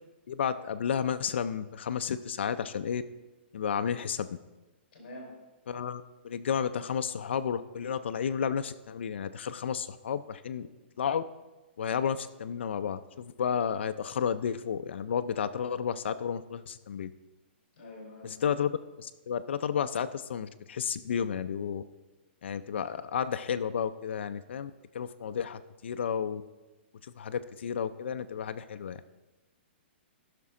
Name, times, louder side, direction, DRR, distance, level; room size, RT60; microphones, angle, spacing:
voice 1, 0.3-3.0 3.5-4.4 5.7-10.7 11.0-11.2 11.8-17.1 18.2-18.7 19.0-21.8 22.4-26.4 27.0-29.0, left 7 dB, 75° left, 9 dB, 0.4 m, -32 dB
voice 2, 4.9-5.3 17.8-18.5, left 1 dB, 45° left, -1 dB, 3.8 m, -46 dB
15.5 x 5.9 x 3.7 m, 1.1 s
hypercardioid pair, 175°, 6 cm